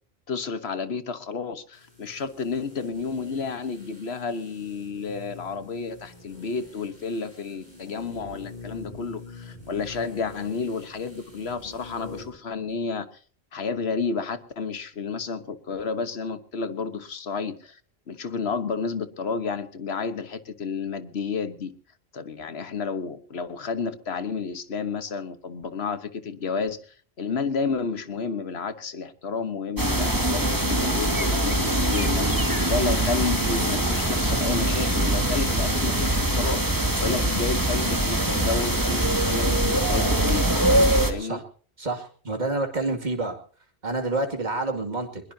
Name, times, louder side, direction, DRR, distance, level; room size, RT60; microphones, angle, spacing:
voice 1, 0.3-13.1 13.5-17.8 18.1-21.7 22.1-26.8 27.2-40.4 41.1-41.4, left 5 dB, 75° left, 11 dB, 1.5 m, -31 dB
sound 1, 1.7-12.4 12.7-12.8, left 2 dB, 45° left, 6.5 m, -45 dB
sound 2, 29.8-41.1, right 1 dB, 20° right, 1.9 m, -23 dB
voice 2, 41.8-43.4 43.8-45.2, right 2 dB, 45° right, 4 dB, 2.5 m, -28 dB
22.0 x 21.0 x 2.8 m, 0.43 s
omnidirectional pair, 1.1 m